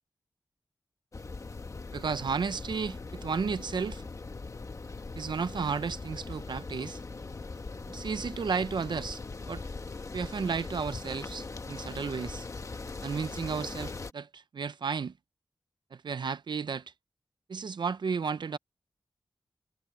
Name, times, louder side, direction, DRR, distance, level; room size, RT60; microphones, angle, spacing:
sound 1, 1.1-14.1, left 3 dB, 40° left, 1.1 m, -40 dB
voice 1, 1.9-4.0 5.1-7.0 7.9-9.2 9.5-9.6 10.1-12.5 13.0-15.1 15.9-16.8 17.5-18.6, right 5 dB, 65° right, 0.6 m, -33 dB
wide cardioid pair, 130°, 8 cm